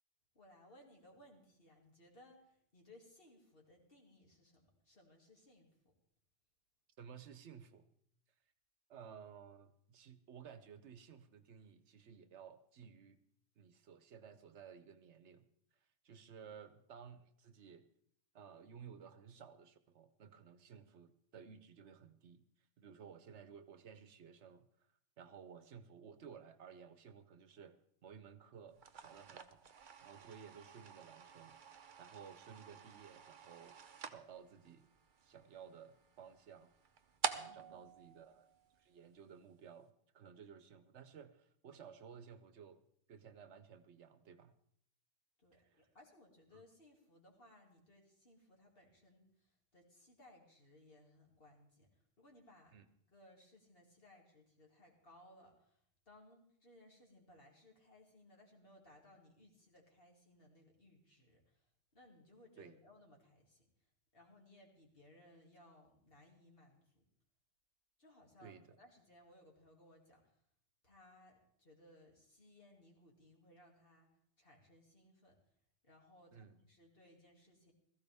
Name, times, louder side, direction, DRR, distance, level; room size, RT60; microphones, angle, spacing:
voice 1, 0.3-5.9 37.3-37.8 45.4-52.8 53.1-63.7 64.1-67.0 68.0-70.4 70.8-75.4 75.8-77.7, left 1 dB, 50° left, 0 dB, 2.7 m, -64 dB
voice 2, 7.0-8.0 8.9-13.2 13.6-15.4 16.0-17.9 18.3-22.4 22.8-24.7 25.2-29.7 30.0-33.8 34.1-34.9 35.2-36.7 37.3-38.5 38.8-42.8 43.1-44.5 45.5-45.8 46.5-46.6 52.7-52.8 62.6-62.7 68.4-68.6 76.3-76.6, right 7 dB, 75° right, 11 dB, 1.1 m, -56 dB
sound 1, 28.7-39.1, right 7 dB, 50° right, 0.8 m, -48 dB
16.5 x 14.5 x 3.5 m, 0.68 s
omnidirectional pair, 1.2 m